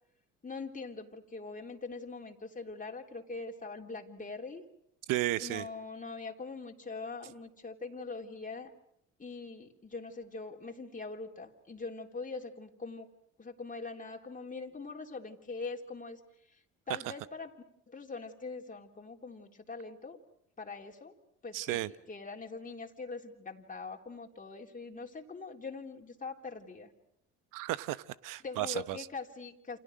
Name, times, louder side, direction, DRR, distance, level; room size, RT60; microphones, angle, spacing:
voice 1, 0.4-4.7 5.4-8.7 9.2-13.1 13.4-17.5 17.9-20.2 20.6-21.8 22.1-26.9 28.4-29.8, left 4 dB, 20° left, 3.5 m, -43 dB
voice 2, 5.1-5.7 21.5-21.9 27.5-29.0, right 16 dB, 60° right, 1.1 m, -33 dB
29.5 x 28.5 x 6.3 m
hypercardioid pair, 60°, 36 cm